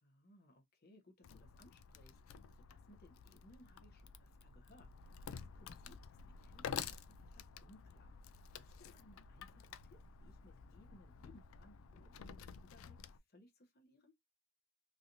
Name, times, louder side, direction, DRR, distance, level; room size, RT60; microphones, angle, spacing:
voice 1, 0.0-14.1, left 1 dB, 50° left, 0.8 m, -65 dB
Wood, 1.2-13.2, left 7 dB, 70° left, 0.3 m, -51 dB
sound 1, 3.7-12.3, right 1 dB, 15° left, 0.5 m, -66 dB
3.2 x 2.6 x 2.5 m
head